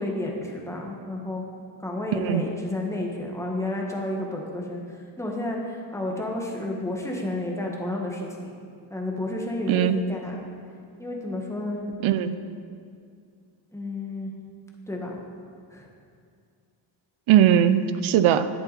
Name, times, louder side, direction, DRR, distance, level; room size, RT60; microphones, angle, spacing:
voice 1, 0.0-1.5 1.8-8.5 8.9-10.4 11.0-11.9 13.7-14.3 14.9-15.2 15.7-15.9, left 1 dB, 5° left, -1 dB, 1.6 m, -31 dB
voice 2, 9.7-10.0 12.0-12.4 17.3-18.5, right 10 dB, 75° right, 12 dB, 0.6 m, -20 dB
11.0 x 8.0 x 4.2 m, 2.3 s
cardioid pair, 90°, 48 cm